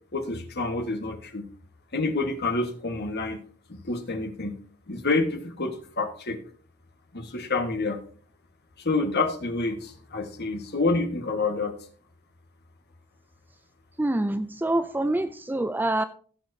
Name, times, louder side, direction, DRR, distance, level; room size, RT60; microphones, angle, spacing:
voice 1, 0.1-1.5 1.9-3.4 3.8-4.6 4.9-6.4 7.1-8.0 8.8-11.7, left 3 dB, 50° left, 5 dB, 1.5 m, -28 dB
voice 2, 14.0-16.0, right 1 dB, 10° right, 11 dB, 0.3 m, -26 dB
16.5 x 7.5 x 2.8 m, 0.43 s
head